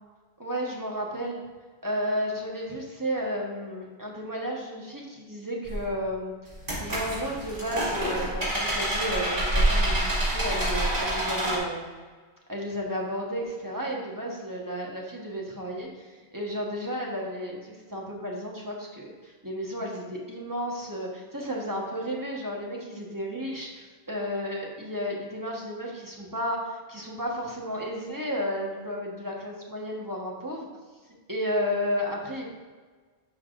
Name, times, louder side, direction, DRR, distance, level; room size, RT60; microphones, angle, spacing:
voice 1, 0.4-1.4 1.8-6.5 6.8-11.9 12.5-30.7 31.3-32.5, equal, 20° right, -3 dB, 1.2 m, -33 dB
sound 1, 5.7-5.8 6.5-11.6, right 1 dB, 50° right, 2.7 m, -27 dB
10.5 x 5.8 x 2.5 m, 1.4 s
omnidirectional pair, 1.1 m